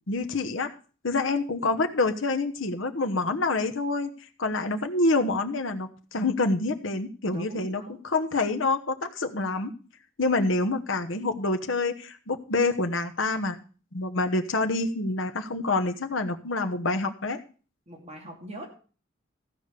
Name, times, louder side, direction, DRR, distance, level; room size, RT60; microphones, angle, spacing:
voice 1, 0.1-0.7 1.0-4.1 4.4-9.7 10.2-13.6 13.9-17.4, left 3 dB, 75° left, 6 dB, 1.1 m, -27 dB
voice 2, 7.3-8.0 17.9-18.7, right 1 dB, 30° right, 0 dB, 2.9 m, -42 dB
14.5 x 5.1 x 6.7 m, 0.38 s
head